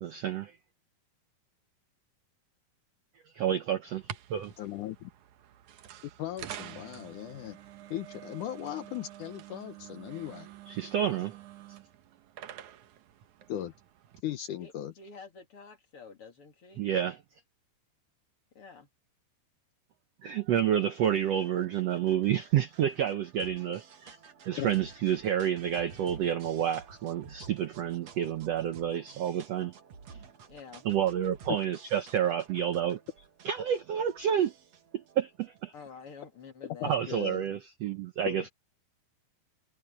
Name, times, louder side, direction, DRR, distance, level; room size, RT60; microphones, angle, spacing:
voice 1, 0.0-0.6 3.3-4.5 10.7-11.4 16.8-17.2 20.2-24.2 24.5-29.8 30.1-30.2 30.8-33.0 33.4-34.5 34.9-35.7 36.8-38.5, right 10 dB, 85° right, 1.4 m, -29 dB
sound 1, 3.9-14.2, right 11 dB, 65° right, 2.3 m, -47 dB
voice 2, 4.6-5.1 6.2-7.6 7.9-10.5 13.5-13.7 14.2-14.9 24.6-24.7 36.8-37.4 38.2-38.4, left 12 dB, 70° left, 2.2 m, -37 dB
voice 3, 14.6-16.8 18.6-18.9 30.5-30.9 35.7-37.0 37.4-37.6, left 5 dB, 40° left, 3.4 m, -49 dB
sound 2, 20.7-36.3, right 5 dB, 50° right, 2.8 m, -52 dB
omnidirectional pair, 4.2 m